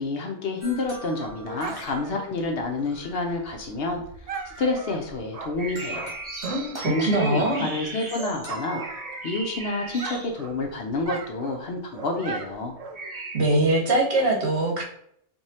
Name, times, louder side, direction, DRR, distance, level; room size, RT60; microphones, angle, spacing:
voice 1, 0.0-4.0 4.5-6.1 6.8-8.8 9.2-12.8, left 2 dB, 60° left, 3 dB, 0.8 m, -28 dB
sound 1, 0.6-3.7 4.3-5.3 5.7-7.9 8.4-9.7, equal, 20° left, 1.5 m, -46 dB
Dog, 0.6-6.9 7.3-9.6 9.8-13.3, right 5 dB, 80° right, 0.3 m, -39 dB
sound 2, 5.6-10.6 12.9-13.4, right 2 dB, 30° right, 0.6 m, -37 dB
voice 2, 6.4-7.7 13.3-14.8, right 2 dB, 65° right, -1 dB, 1.3 m, -23 dB
4.7 x 2.6 x 2.8 m, 0.67 s
omnidirectional pair, 1.2 m